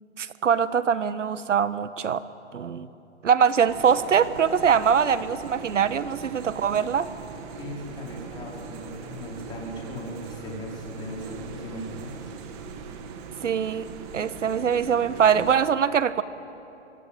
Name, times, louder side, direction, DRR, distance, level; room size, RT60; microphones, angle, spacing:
voice 1, 0.2-2.2 2.5-2.9 3.2-7.1 13.4-13.9 14.1-16.2, right 7 dB, 90° right, 14 dB, 1.3 m, -23 dB
sound 1, 3.7-15.6, right 6 dB, 20° right, 1.6 m, -40 dB
voice 2, 7.6-12.3, left 1 dB, 10° left, -3 dB, 4.7 m, -38 dB
25.0 x 25.0 x 9.1 m, 2.9 s
hypercardioid pair, 165°, 36 cm